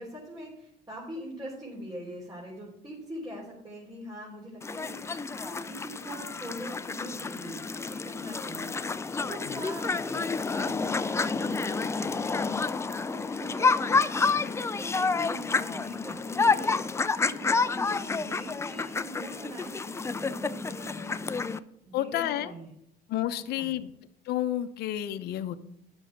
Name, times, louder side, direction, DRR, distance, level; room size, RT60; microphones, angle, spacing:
voice 1, 0.0-8.7 8.9-12.4 13.1-14.0 14.3-21.3 21.8-22.7 23.3-23.7, equal, 25° right, -4 dB, 3.3 m, -43 dB
sound 1, 4.6-21.6, left 4 dB, 15° left, 0.4 m, -29 dB
voice 2, 21.9-22.5 23.1-23.9 24.3-25.6, left 12 dB, 70° left, 10 dB, 0.7 m, -30 dB
9.8 x 6.3 x 5.8 m, 0.79 s
cardioid pair, 110°, 17 cm